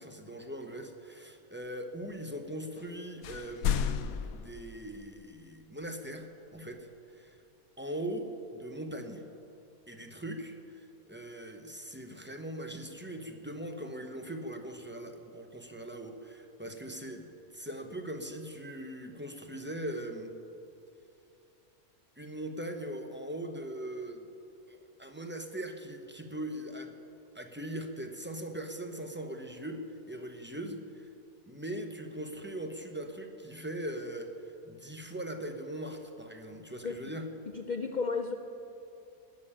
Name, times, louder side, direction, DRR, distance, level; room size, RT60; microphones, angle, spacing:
voice 1, 0.0-7.4 7.8-9.2 9.9-17.3 17.5-20.3 22.2-24.3 24.7-26.9 27.3-31.1 31.5-37.3, right 1 dB, 10° right, 5 dB, 0.7 m, -40 dB
sound 1, 2.8-2.9 3.2-5.3, left 8 dB, 75° left, 1.1 m, -33 dB
voice 2, 37.5-38.4, left 4 dB, 60° left, 6 dB, 0.4 m, -33 dB
18.0 x 7.2 x 8.7 m, 2.7 s
omnidirectional pair, 1.5 m